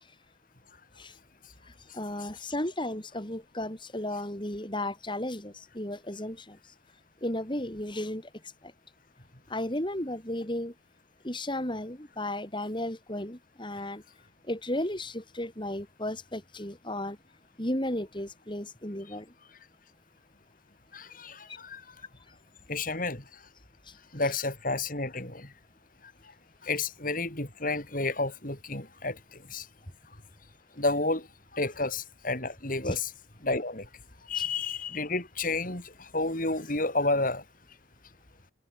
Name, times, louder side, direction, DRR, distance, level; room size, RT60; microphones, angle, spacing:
voice 1, 1.9-6.6 7.2-8.3 8.6-8.7 9.5-10.7 11.2-14.0 14.5-17.2 17.6-19.3 32.8-33.0 34.3-34.4, left 1 dB, 25° left, 4.2 m, -34 dB
voice 2, 20.9-22.0 22.7-23.4 24.1-25.5 26.0-26.3 26.6-29.7 30.8-33.1 33.4-33.9 34.2-37.4, left 3 dB, 45° left, 5.4 m, -31 dB
head